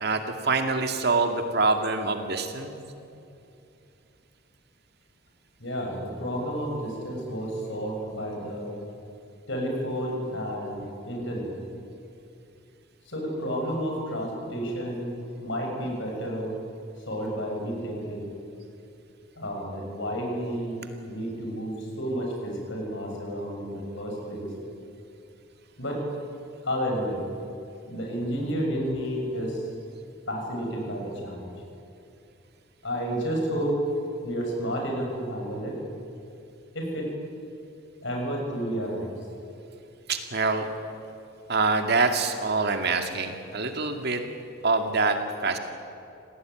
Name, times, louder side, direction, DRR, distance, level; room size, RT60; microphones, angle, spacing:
voice 1, 0.0-2.7 40.1-40.7 41.5-44.2 44.6-45.6, right 3 dB, 55° right, 5 dB, 2.3 m, -25 dB
voice 2, 5.6-8.8 9.5-11.5 13.1-16.6 17.1-18.3 19.4-20.8 21.1-24.5 25.8-26.0 26.6-27.2 27.9-29.7 30.3-31.5 32.8-33.8 34.2-35.8 36.7-37.1 38.0-39.1, equal, 65° left, 1 dB, 7.2 m, -31 dB
28.0 x 18.0 x 9.3 m, 2.7 s
head